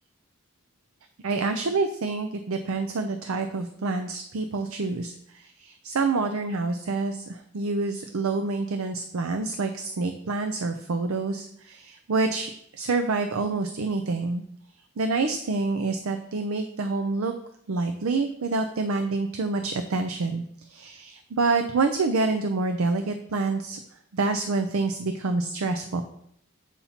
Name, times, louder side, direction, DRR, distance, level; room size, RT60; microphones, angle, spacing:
voice 1, 1.2-14.4 15.0-17.3 17.7-20.4 20.7-23.8 24.1-26.0, right 3 dB, 75° right, 7 dB, 0.5 m, -27 dB
8.1 x 2.9 x 5.6 m, 0.71 s
head